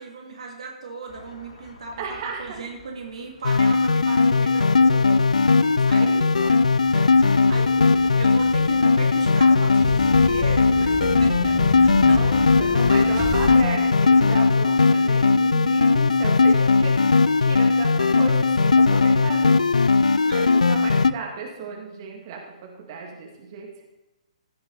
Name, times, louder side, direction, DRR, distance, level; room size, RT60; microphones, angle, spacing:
voice 1, 0.0-5.2 5.8-6.3 6.8-7.7 8.1-12.8 20.2-20.5, right 4 dB, 65° right, 0 dB, 2.3 m, -37 dB
sound 1, 1.1-14.7, left 1 dB, 60° left, 4.4 m, -50 dB
voice 2, 2.0-2.6 5.6-7.9 12.0-17.1 17.4-19.6 20.3-23.8, right 5 dB, 40° right, 1 dB, 2.3 m, -35 dB
sound 2, 3.4-21.1, left 4 dB, 75° left, 0.4 m, -18 dB
sound 3, 6.8-13.5, left 2 dB, 35° left, 4.4 m, -33 dB
16.0 x 6.7 x 4.1 m, 1.0 s
figure-of-eight pair, 125°, 4 cm